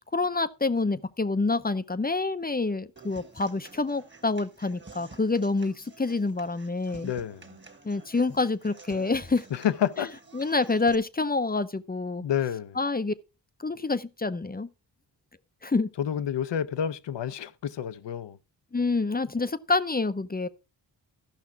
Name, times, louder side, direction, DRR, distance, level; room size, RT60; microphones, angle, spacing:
voice 1, 0.1-7.1 7.8-9.4 10.0-10.1 10.3-12.2 12.8-13.1 13.6-14.7 15.6-15.9 18.7-20.5, left 3 dB, 20° left, 0.7 m, -27 dB
Human voice / Acoustic guitar, 3.0-10.9, right 3 dB, 25° right, 1.6 m, -50 dB
voice 2, 7.0-7.6 9.5-10.1 12.2-12.8 16.0-18.4, left 9 dB, 70° left, 0.8 m, -29 dB
13.5 x 5.8 x 4.6 m
cardioid pair, 55°, 45 cm